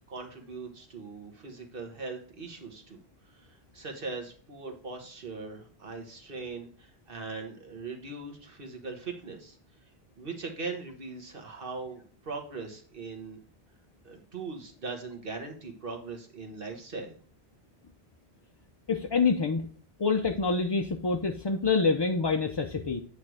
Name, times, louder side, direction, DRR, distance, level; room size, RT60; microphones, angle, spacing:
voice 1, 0.1-3.0 3.3-9.6 10.2-13.4 14.0-17.1, right 4 dB, 60° right, 3 dB, 1.6 m, -40 dB
voice 2, 18.9-19.7 20.0-23.0, left 4 dB, 40° left, 4 dB, 0.4 m, -26 dB
8.6 x 3.3 x 6.2 m, 0.43 s
omnidirectional pair, 1.1 m